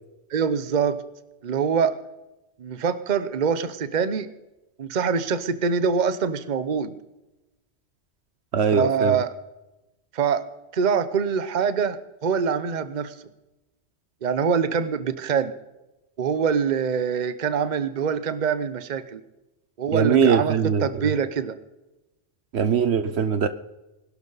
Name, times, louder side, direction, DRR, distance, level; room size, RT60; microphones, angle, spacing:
voice 1, 0.3-1.0 1.4-1.9 2.6-4.3 4.8-6.9 8.7-9.3 10.1-10.4 10.7-12.0 12.2-13.1 14.2-15.5 16.2-19.2 19.8-21.6, right 6 dB, 40° right, 13 dB, 0.9 m, -24 dB
voice 2, 8.5-9.2 19.9-21.1 22.5-23.5, right 6 dB, 65° right, 12 dB, 1.0 m, -21 dB
21.0 x 12.0 x 4.0 m, 0.98 s
omnidirectional pair, 1.3 m